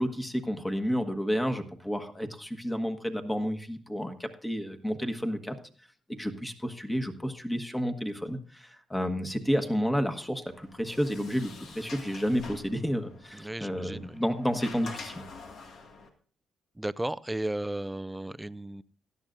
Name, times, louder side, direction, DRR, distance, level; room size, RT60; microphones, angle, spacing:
voice 1, 0.0-5.5 6.1-15.2, equal, 10° left, 1.4 m, -31 dB
Sliding door, 10.5-16.1, left 4 dB, 70° left, 1.9 m, -47 dB
voice 2, 13.3-14.1 16.8-18.8, right 1 dB, 10° right, 0.4 m, -34 dB
17.0 x 12.0 x 2.6 m
cardioid pair, 90°, 0 cm